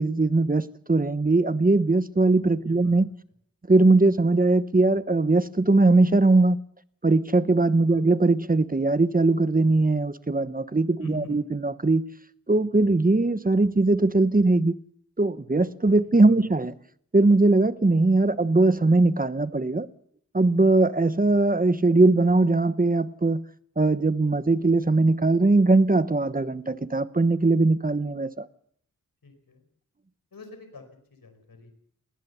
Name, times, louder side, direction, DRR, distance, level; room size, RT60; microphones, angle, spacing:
voice 1, 0.0-3.1 3.7-6.6 7.0-12.0 12.5-14.7 15.2-16.7 17.1-19.9 20.3-23.5 23.8-28.5, right 2 dB, 25° right, 0.9 m, -20 dB
voice 2, 2.6-2.9 7.9-8.1 11.0-11.4 29.2-29.6 30.3-30.8 31.1-31.7, left 4 dB, 80° left, 4.8 m, -45 dB
20.0 x 19.0 x 6.9 m
wide cardioid pair, 65°, 34 cm